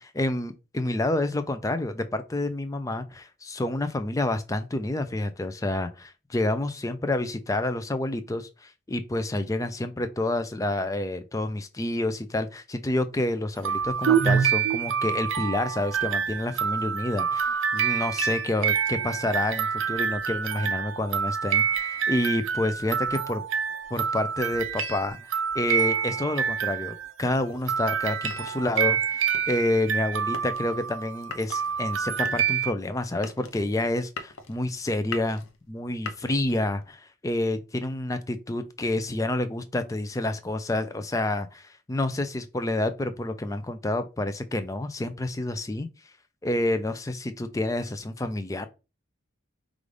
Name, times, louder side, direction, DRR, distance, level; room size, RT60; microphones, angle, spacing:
voice 1, 0.0-23.4 23.9-25.2 25.5-35.4 35.7-45.9 46.4-48.7, left 1 dB, 15° left, 0.4 m, -29 dB
sound 1, 13.6-27.2 27.7-32.7, right 7 dB, 65° right, 0.5 m, -27 dB
sound 2, 27.2-36.9, left 5 dB, 80° left, 0.6 m, -43 dB
5.0 x 2.5 x 3.2 m
head